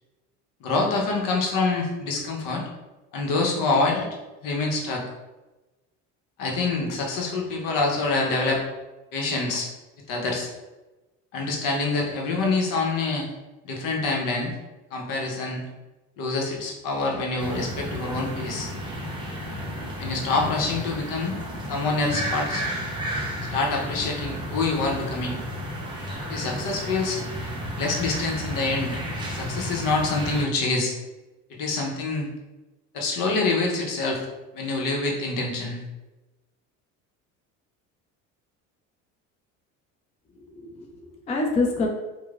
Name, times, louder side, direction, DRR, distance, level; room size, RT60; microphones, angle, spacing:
voice 1, 0.6-2.6 3.1-4.1 4.4-5.0 6.4-8.6 9.1-9.7 10.1-10.5 11.3-13.3 13.6-14.5 14.9-15.6 16.2-18.7 20.0-21.4 21.7-22.6 23.5-25.4 26.3-27.2 27.8-29.0 29.3-30.9 31.5-32.3 32.9-34.3 34.5-35.8, left 3 dB, 60° left, 0 dB, 0.8 m, -26 dB
sound 1, 17.4-30.4, equal, 15° right, 0.7 m, -32 dB
voice 2, 40.4-41.9, left 3 dB, 20° left, 1 dB, 0.3 m, -27 dB
2.9 x 2.0 x 2.3 m, 1.1 s
supercardioid pair, 90°, 37 cm